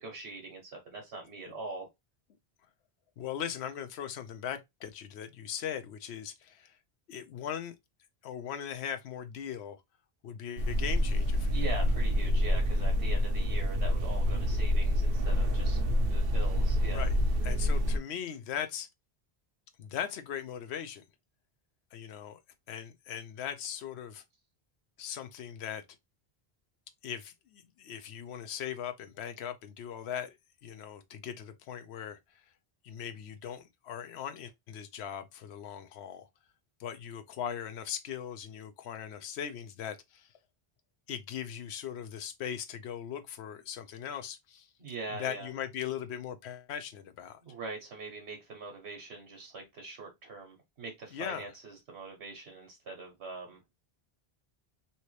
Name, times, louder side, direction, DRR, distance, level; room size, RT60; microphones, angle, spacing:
voice 1, 0.0-1.9 11.5-15.8 16.1-17.1 44.8-45.5 47.4-53.6, right 3 dB, 85° right, 1.3 m, -42 dB
voice 2, 3.2-6.7 7.1-7.7 8.2-9.8 10.2-11.6 16.9-17.1 17.4-18.9 19.8-21.0 21.9-22.4 22.7-24.2 25.0-25.8 27.0-30.4 30.6-32.2 32.8-36.3 36.8-40.3 41.1-44.7 45.1-47.4 51.1-51.5, left 9 dB, 85° left, 0.9 m, -39 dB
sound 1, 10.6-18.0, equal, 65° right, 0.9 m, -27 dB
3.2 x 2.8 x 3.1 m
omnidirectional pair, 1.1 m